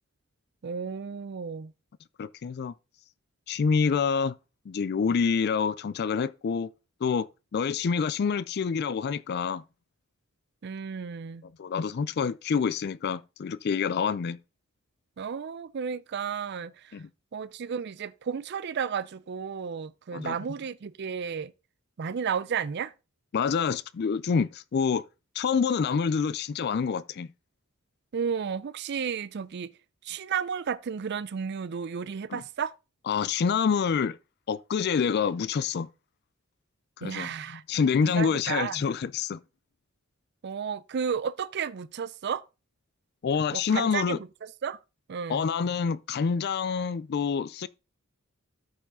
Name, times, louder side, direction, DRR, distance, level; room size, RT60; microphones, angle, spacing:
voice 1, 0.6-1.7 10.6-11.4 15.2-17.0 17.3-21.5 22.0-22.9 28.1-29.7 30.0-32.7 37.0-37.6 38.2-38.8 40.4-42.4 43.5-44.3 44.6-44.8 45.1-45.4, right 7 dB, 55° right, 0.4 m, -33 dB
voice 2, 2.2-2.7 3.5-4.4 4.7-6.7 7.0-9.6 11.4-14.4 16.9-17.1 20.1-20.4 23.3-25.0 25.4-27.3 32.3-32.4 33.1-34.2 34.5-35.9 37.0-39.4 43.2-44.2 45.3-47.7, left 6 dB, 50° left, 0.4 m, -27 dB
13.0 x 4.8 x 3.6 m
head